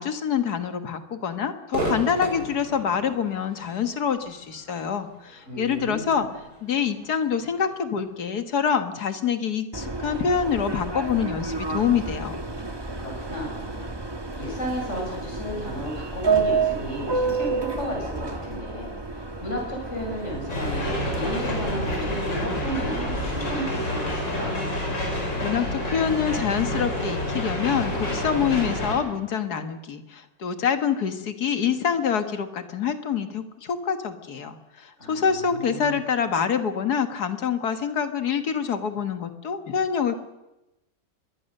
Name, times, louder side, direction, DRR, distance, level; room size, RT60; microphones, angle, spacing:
voice 1, 0.0-6.3 6.6-12.4 25.4-40.2, left 7 dB, 60° left, 9 dB, 2.0 m, -26 dB
Crowd / Fireworks, 1.7-9.0, right 1 dB, 60° right, 7.1 m, -37 dB
voice 2, 5.5-6.3 13.0-13.9 14.4-24.5 35.0-36.0, equal, 40° left, -1 dB, 6.9 m, -33 dB
Subway metro underground, 9.7-23.5, right 4 dB, 15° right, 1.3 m, -30 dB
sound 1, 20.5-28.9, left 1 dB, 80° left, 6.4 m, -28 dB
25.0 x 21.0 x 6.6 m, 0.96 s
omnidirectional pair, 1.9 m